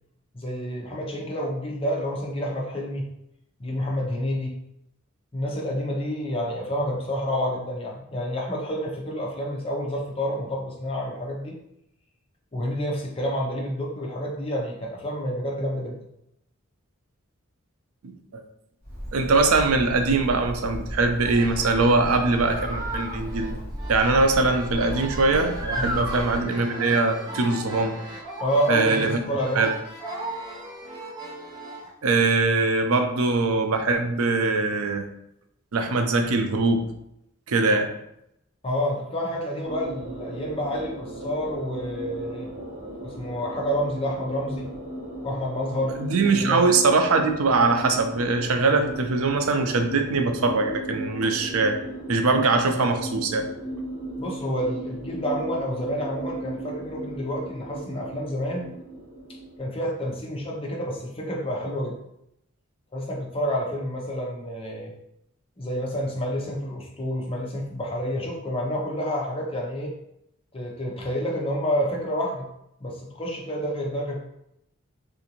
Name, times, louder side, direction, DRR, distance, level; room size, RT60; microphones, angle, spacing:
voice 1, 0.3-3.1 3.6-4.6 5.3-11.6 12.5-16.0 25.8-26.0 28.4-29.6 38.6-42.5 43.0-44.7 45.2-46.0 46.4-46.6 54.2-58.7 59.6-62.0 62.9-64.9 65.6-69.9 70.5-72.5 72.8-74.2, equal, 25° left, -1 dB, 0.7 m, -29 dB
voice 2, 18.0-18.4 19.1-23.6 23.9-28.0 28.7-29.2 29.6-29.7 32.0-35.1 35.7-36.8 37.5-37.9 46.0-51.8 52.1-53.5, right 3 dB, 80° right, 5 dB, 0.5 m, -22 dB
Bird, 18.8-26.4, equal, 40° right, 1.4 m, -35 dB
sound 1, 21.3-31.9, right 1 dB, 20° right, 0.6 m, -36 dB
sound 2, 39.6-59.6, right 1 dB, 60° right, 1.4 m, -37 dB
3.7 x 2.5 x 2.9 m, 0.79 s
head